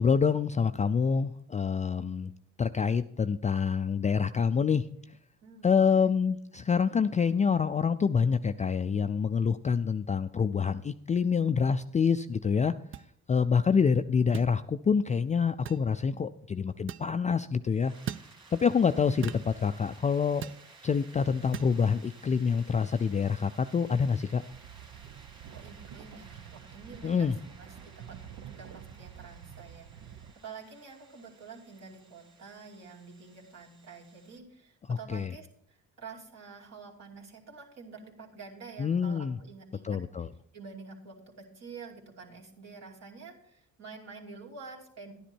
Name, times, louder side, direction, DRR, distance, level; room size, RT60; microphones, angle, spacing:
voice 1, 0.0-2.3 2.6-4.8 5.6-12.7 13.3-17.9 18.5-20.5 20.8-24.4 27.0-27.4 34.9-35.3 38.8-39.4 39.8-40.3, left 6 dB, 25° left, 10 dB, 0.3 m, -26 dB
voice 2, 5.4-6.1 25.4-40.3 40.5-45.1, right 4 dB, 60° right, -1 dB, 2.7 m, -48 dB
sound 1, 12.9-13.1 14.3-14.5 15.7-15.9 16.9-17.1 18.1-18.3 19.2-19.5 20.4-20.6 21.5-21.7, right 10 dB, 45° right, 0.5 m, -38 dB
sound 2, 17.7-34.4, right 3 dB, 15° right, 2.1 m, -56 dB
sound 3, 24.5-30.3, right 9 dB, 75° right, 0.8 m, -48 dB
11.5 x 10.0 x 4.4 m, 0.67 s
cardioid pair, 90°, 30 cm